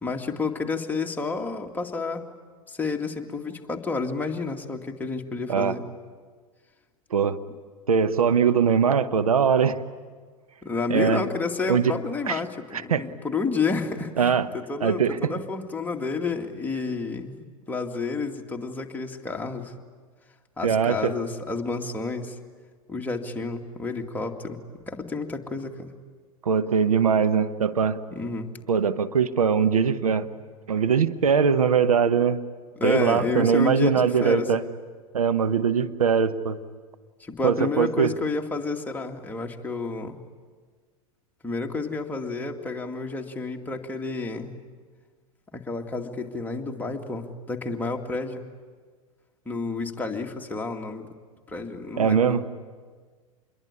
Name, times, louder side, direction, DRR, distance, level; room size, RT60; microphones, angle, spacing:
voice 1, 0.0-2.3 2.7-5.8 10.6-19.7 20.6-22.4 22.9-24.6 24.9-25.9 28.1-28.5 32.8-34.5 37.2-40.2 41.4-44.5 45.5-48.4 49.5-51.1 51.5-52.4, left 3 dB, 10° left, 2 dB, 2.3 m, -30 dB
voice 2, 7.9-9.8 10.9-11.2 11.7-11.9 12.2-12.4 12.7-13.1 14.2-14.5 14.8-15.3 20.6-21.1 26.4-28.0 28.7-30.3 30.7-32.4 32.8-34.6 35.1-36.6 37.4-38.1 52.0-52.4, right 6 dB, 80° right, 11 dB, 1.1 m, -21 dB
27.5 x 22.5 x 9.8 m, 1.6 s
hypercardioid pair, 95°, 18 cm